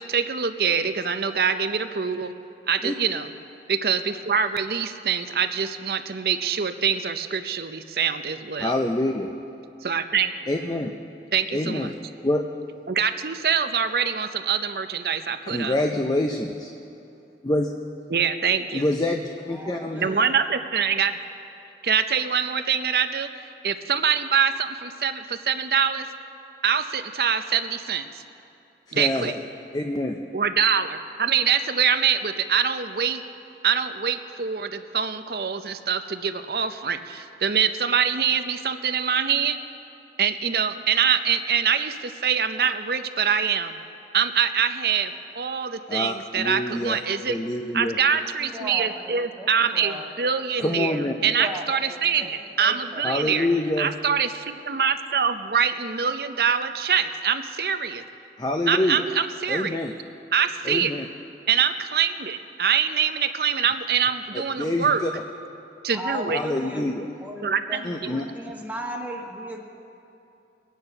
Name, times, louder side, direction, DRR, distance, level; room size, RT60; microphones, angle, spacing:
voice 1, 0.0-2.3 2.7-3.3 3.7-8.8 9.8-10.3 11.3-11.9 12.9-15.7 18.1-18.8 20.0-21.2 21.8-26.1 26.6-28.2 28.9-29.3 30.3-33.2 33.6-39.6 40.2-43.8 44.1-47.4 47.7-51.0 51.2-53.5 53.8-58.0 58.7-59.8 60.3-60.9 61.5-65.0 65.8-66.4 67.4-68.2, right 7 dB, 60° right, 9 dB, 0.6 m, -24 dB
voice 2, 8.6-9.3 10.5-10.9 11.5-11.9 12.2-12.4 15.5-16.7 17.4-17.7 18.7-20.1 28.9-29.3 29.7-30.2 45.9-47.0 47.3-48.0 50.6-51.1 53.0-53.9 58.4-59.0 59.5-59.9 60.6-61.1 64.3-65.1 66.3-67.1 67.8-68.2, left 1 dB, 20° left, 3 dB, 0.5 m, -26 dB
voice 3, 19.5-20.4 48.1-50.1 50.9-51.0 51.2-52.3 52.6-53.0 65.9-66.8 67.2-69.6, right 1 dB, 10° right, -1 dB, 1.3 m, -36 dB
23.0 x 9.3 x 5.4 m, 2.7 s
head